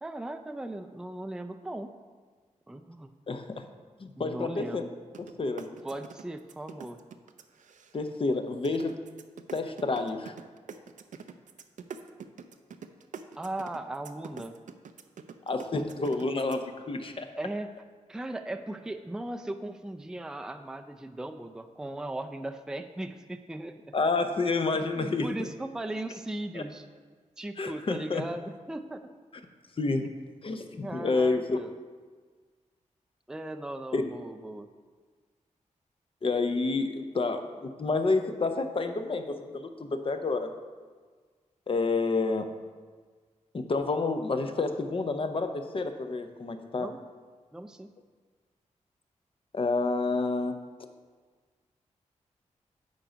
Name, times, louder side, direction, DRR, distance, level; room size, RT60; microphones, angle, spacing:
voice 1, 0.0-1.9 2.7-3.1 4.2-4.9 5.8-7.0 13.4-14.6 17.4-17.7 18.1-24.0 24.7-26.9 27.4-29.1 29.9-30.1 30.8-31.7 33.3-34.7 46.7-47.0 47.5-47.9, right 1 dB, 5° right, 7 dB, 0.4 m, -38 dB
voice 2, 3.3-3.6 4.0-4.8 5.4-5.7 7.9-8.9 9.5-10.3 15.5-17.3 23.9-25.5 26.5-26.6 27.6-28.2 29.8-30.0 30.4-31.6 33.9-34.0 36.2-40.5 41.7-42.5 43.5-46.9 49.5-50.5, left 3 dB, 45° left, 7 dB, 0.7 m, -29 dB
sound 1, 5.1-5.3 5.6-8.2 8.6-16.6, right 6 dB, 75° right, 0.5 m, -44 dB
9.1 x 3.9 x 5.1 m, 1.5 s
cardioid pair, 70°, 13 cm